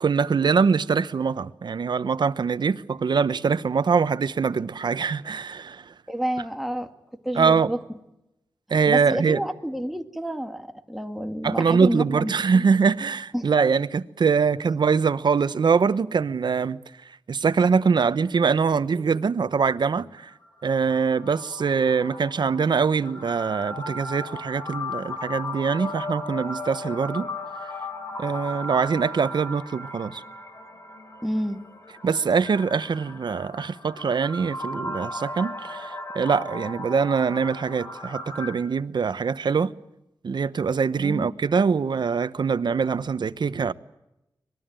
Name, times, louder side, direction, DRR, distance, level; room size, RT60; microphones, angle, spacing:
voice 1, 0.0-5.9 7.4-7.7 8.7-9.4 11.4-16.8 17.3-20.3 20.6-27.3 28.2-30.2 32.0-39.7 40.2-43.7, right 5 dB, 65° right, 1.0 m, -23 dB
voice 2, 6.1-6.9 7.2-7.8 8.9-12.6 13.3-13.5 31.2-31.6 41.0-41.3, equal, ahead, 2.2 m, -29 dB
sound 1, 20.2-38.5, left 1 dB, 35° left, 3.4 m, -36 dB
25.0 x 20.5 x 9.1 m
wide cardioid pair, 95°, 8 cm